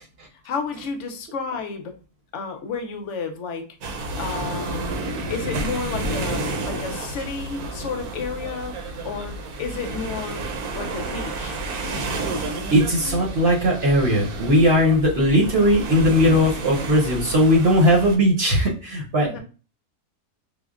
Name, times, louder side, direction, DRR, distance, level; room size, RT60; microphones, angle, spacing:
voice 1, 0.4-1.9 2.3-3.7 4.2-5.0 5.3-8.7 9.0-10.4 10.7-11.6 19.2-19.4, left 5 dB, 60° left, 5 dB, 0.8 m, -31 dB
sound 1, 3.8-18.2, right 2 dB, 75° right, 1.2 m, -30 dB
voice 2, 12.7-19.4, equal, 50° right, -1 dB, 0.9 m, -18 dB
4.9 x 2.1 x 2.4 m, 0.35 s
omnidirectional pair, 1.7 m